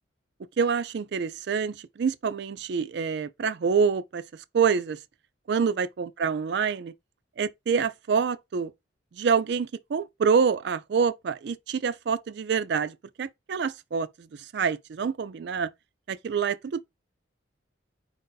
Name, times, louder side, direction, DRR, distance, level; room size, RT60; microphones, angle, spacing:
voice 1, 0.6-4.2 4.5-5.0 5.5-6.9 7.4-8.7 9.1-14.3 14.5-15.7 16.1-16.8, right 6 dB, 60° right, 0.4 m, -26 dB
4.7 x 2.6 x 4.0 m
head